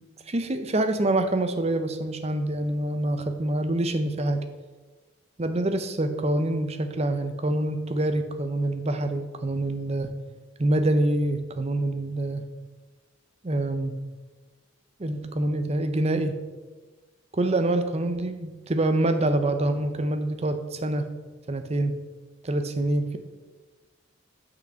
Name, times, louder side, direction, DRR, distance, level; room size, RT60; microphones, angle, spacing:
voice 1, 0.3-4.4 5.4-10.1 10.6-12.4 13.4-14.0 15.0-16.3 17.3-21.1 21.5-21.9 22.4-23.2, right 1 dB, 30° right, 8 dB, 0.7 m, -26 dB
6.6 x 6.0 x 5.7 m, 1.3 s
head